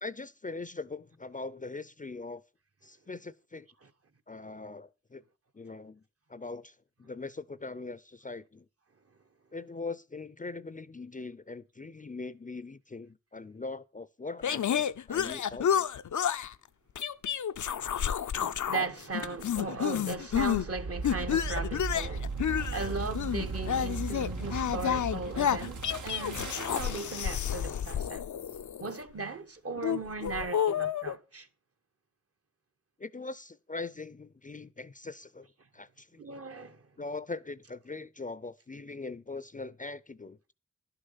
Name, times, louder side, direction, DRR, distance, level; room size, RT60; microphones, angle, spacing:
voice 1, 0.0-2.4 2.8-3.7 4.3-5.2 5.5-6.0 6.3-8.7 9.5-15.9 33.0-35.5 35.7-36.2 37.0-40.5, left 3 dB, 25° left, 0.4 m, -41 dB
sound 1, 14.4-16.5 17.0-18.9 19.1-20.7 21.0-29.0 29.8-31.1, left 9 dB, 80° left, 0.5 m, -30 dB
voice 2, 18.4-28.2 28.8-31.5 36.2-36.9, right 3 dB, 50° right, 1.0 m, -37 dB
sound 2, 20.4-27.3, right 3 dB, 85° right, 1.1 m, -37 dB
11.0 x 6.6 x 5.5 m
wide cardioid pair, 70°, 29 cm